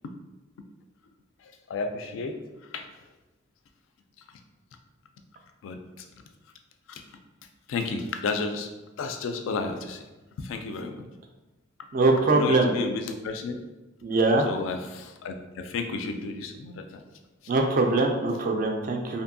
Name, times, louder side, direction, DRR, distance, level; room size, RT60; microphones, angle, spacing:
voice 1, 1.7-2.3 2.7-2.9 5.6-5.8 6.9-7.0 7.7-8.7 9.0-10.0 10.4-11.0 12.3-13.6 14.5-17.0, left 4 dB, 70° left, 6 dB, 0.3 m, -32 dB
voice 2, 11.9-12.7 14.0-14.5 17.5-19.2, right 2 dB, 45° right, 2 dB, 0.3 m, -22 dB
2.6 x 2.6 x 2.6 m, 1.1 s
head